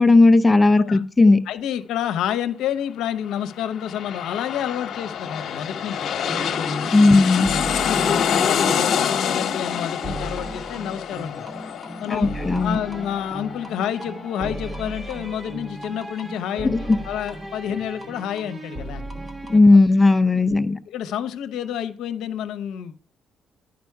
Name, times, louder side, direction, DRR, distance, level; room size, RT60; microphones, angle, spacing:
voice 1, 0.0-1.4 6.9-7.5 12.1-12.8 16.6-17.0 19.5-20.8, left 3 dB, 20° left, 0.6 m, -15 dB
voice 2, 1.5-6.1 6.6-11.4 12.0-12.3 12.6-19.0 20.9-22.9, left 9 dB, 85° left, 0.8 m, -29 dB
sound 1, 3.5-14.8 15.2-15.3, left 7 dB, 70° left, 1.1 m, -27 dB
sound 2, 6.2-19.6, right 1 dB, 30° right, 1.4 m, -36 dB
10.5 x 5.2 x 4.6 m
cardioid pair, 90°, 0 cm